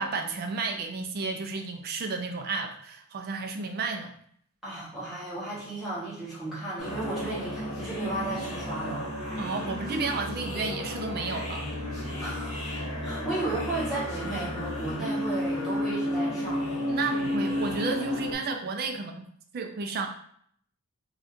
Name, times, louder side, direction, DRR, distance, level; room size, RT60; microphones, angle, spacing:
voice 1, 0.0-4.1 7.3-7.4 9.4-11.7 16.9-19.2 19.5-20.1, right 4 dB, 45° right, 4 dB, 0.3 m, -32 dB
voice 2, 4.6-9.0 12.2-12.7 13.0-16.7, right 2 dB, ahead, -10 dB, 1.2 m, -34 dB
sound 1, 6.8-18.3, left 1 dB, 70° left, 1.1 m, -32 dB
2.6 x 2.3 x 3.5 m, 0.64 s
head